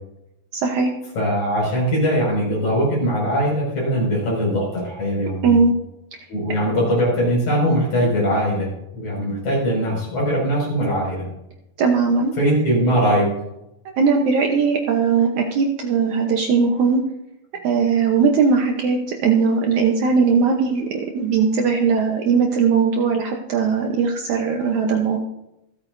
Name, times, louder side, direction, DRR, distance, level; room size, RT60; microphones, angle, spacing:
voice 1, 0.5-0.9 5.4-5.7 11.8-12.3 14.0-17.0 17.6-25.2, right 5 dB, 65° right, 2 dB, 2.1 m, -19 dB
voice 2, 1.2-5.6 6.3-11.3 12.4-13.3, equal, 55° left, -4 dB, 7.3 m, -21 dB
26.5 x 8.9 x 2.7 m, 0.88 s
omnidirectional pair, 4.2 m